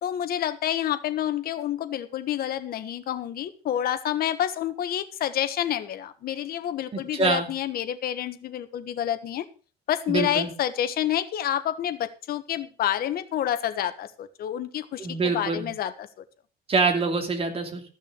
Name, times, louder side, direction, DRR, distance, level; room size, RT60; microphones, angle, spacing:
voice 1, 0.0-9.4 9.9-16.1, left 11 dB, 65° left, 11 dB, 1.4 m, -28 dB
voice 2, 6.9-7.5 10.1-10.5 15.0-15.7 16.7-17.8, right 4 dB, 35° right, 5 dB, 2.8 m, -25 dB
14.0 x 6.4 x 6.7 m, 0.39 s
cardioid pair, 110°, 17 cm